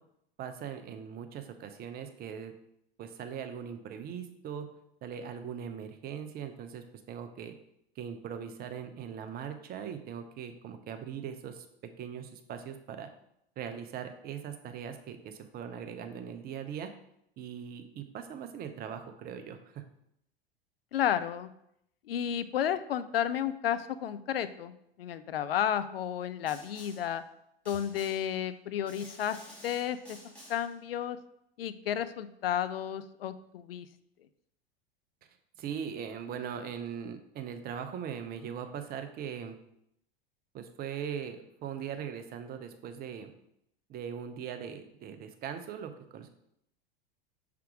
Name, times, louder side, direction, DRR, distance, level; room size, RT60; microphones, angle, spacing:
voice 1, 0.4-2.5 3.0-4.7 5.0-7.5 8.0-11.6 12.0-13.1 13.6-16.9 17.4-19.8 35.6-39.6 40.5-43.3 43.9-46.3, right 8 dB, 30° right, 8 dB, 0.7 m, -40 dB
voice 2, 20.9-21.5 22.1-27.2 27.7-29.4 29.6-30.2 30.5-31.2 31.6-33.9, left 10 dB, 75° left, 13 dB, 0.5 m, -32 dB
Snare drum, 26.5-27.2 27.7-28.4 28.9-30.8, equal, 5° left, 2.0 m, -51 dB
5.8 x 3.6 x 4.8 m, 0.76 s
figure-of-eight pair, 85°, 30 cm